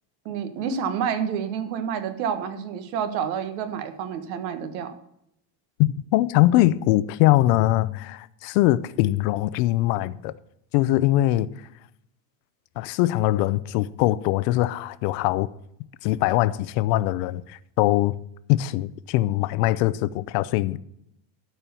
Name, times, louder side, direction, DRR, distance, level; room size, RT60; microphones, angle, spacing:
voice 1, 0.2-5.0, right 7 dB, 90° right, 1.6 m, -29 dB
voice 2, 5.8-10.3 10.7-11.5 12.8-15.5 16.0-18.2 18.5-20.8, left 16 dB, 75° left, 0.7 m, -22 dB
12.5 x 4.6 x 6.9 m
cardioid pair, 160°, 49 cm